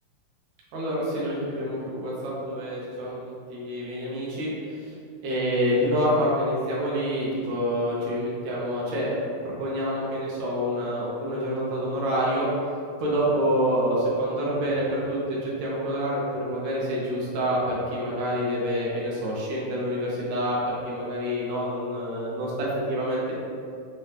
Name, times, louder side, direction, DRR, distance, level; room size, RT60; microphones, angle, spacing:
voice 1, 0.7-3.2 3.5-4.9 5.2-9.2 9.4-12.5 13.0-20.6 20.9-23.3, equal, 65° right, -6 dB, 2.0 m, -27 dB
5.6 x 2.7 x 3.3 m, 2.4 s
omnidirectional pair, 3.9 m